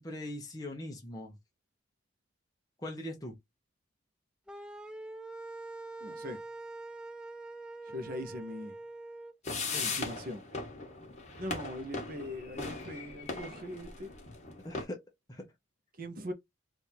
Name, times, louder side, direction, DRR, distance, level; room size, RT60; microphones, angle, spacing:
voice 1, 0.0-1.4 2.8-3.4 9.7-10.0 14.6-15.0 15.3-15.5, left 1 dB, 20° left, 0.9 m, -41 dB
sound 1, 4.5-9.3, right 2 dB, 5° right, 0.4 m, -44 dB
voice 2, 6.0-6.4 7.9-8.7 9.8-10.4 11.4-14.1 16.0-16.3, left 1 dB, 45° right, 0.8 m, -41 dB
sound 2, 9.4-14.8, left 3 dB, 35° left, 1.3 m, -39 dB
3.5 x 2.6 x 4.5 m
head